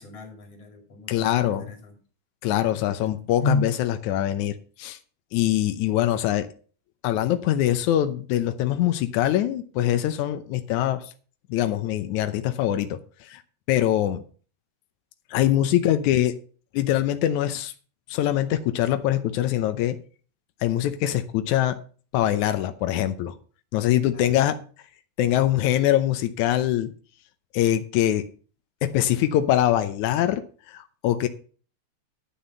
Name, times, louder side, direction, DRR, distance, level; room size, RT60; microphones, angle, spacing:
voice 1, 0.0-2.0 2.5-3.1 3.4-3.7 24.1-24.4, left 2 dB, 45° left, 4 dB, 3.3 m, -32 dB
voice 2, 1.1-1.6 2.4-5.0 5.3-6.5 7.0-11.1 11.5-13.4 13.7-14.2 15.3-16.4 16.7-17.7 18.1-20.0 20.6-21.8 22.1-23.4 23.7-24.6 25.2-26.9 27.5-28.3 28.8-31.3, left 12 dB, 85° left, 10 dB, 1.7 m, -23 dB
11.5 x 7.2 x 5.5 m, 0.39 s
omnidirectional pair, 4.4 m